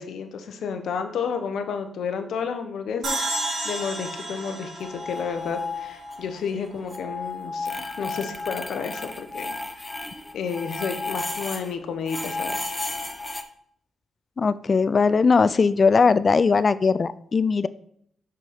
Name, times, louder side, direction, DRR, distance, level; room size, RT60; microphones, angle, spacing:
voice 1, 0.0-9.9 10.3-12.7, left 6 dB, 80° left, 8 dB, 1.0 m, -31 dB
sound 1, 3.0-6.3, right 2 dB, 65° right, 3.2 m, -32 dB
sound 2, 4.8-6.4 6.6-11.7 12.1-13.4, left 3 dB, 15° left, 0.8 m, -33 dB
voice 2, 14.4-17.7, left 4 dB, 45° left, 17 dB, 0.3 m, -19 dB
6.4 x 6.2 x 4.2 m, 0.68 s
cardioid pair, 65°, 0 cm